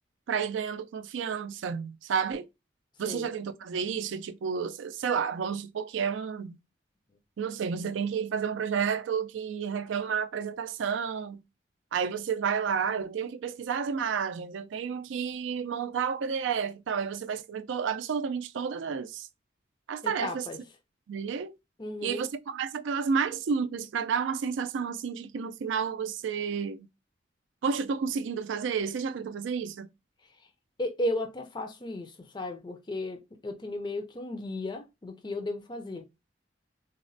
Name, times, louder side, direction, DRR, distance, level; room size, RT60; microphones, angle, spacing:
voice 1, 0.3-2.5 3.0-6.6 7.4-11.4 11.9-19.3 19.9-20.5 21.1-21.6 22.0-26.9 27.6-29.9, right 6 dB, 80° right, 0.4 m, -31 dB
voice 2, 20.0-20.6 21.8-22.3 30.2-30.5 30.8-36.1, left 1 dB, 25° left, 0.4 m, -35 dB
4.0 x 2.1 x 2.5 m
head